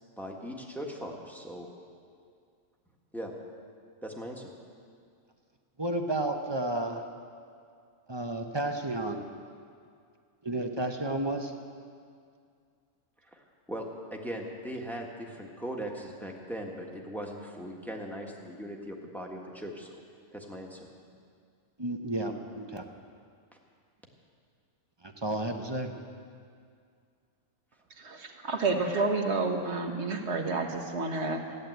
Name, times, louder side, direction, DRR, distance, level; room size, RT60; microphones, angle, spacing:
voice 1, 0.2-1.7 3.1-3.3 4.0-4.5 13.3-13.4 13.7-20.0 20.3-20.8, equal, ahead, 0 dB, 1.5 m, -39 dB
voice 2, 5.8-7.1 8.1-9.2 10.4-11.5 21.8-22.8 25.0-26.0, right 1 dB, 20° right, 4 dB, 0.8 m, -32 dB
voice 3, 28.0-31.6, right 3 dB, 55° right, 4 dB, 1.4 m, -30 dB
15.0 x 10.5 x 8.0 m, 2.2 s
omnidirectional pair, 1.5 m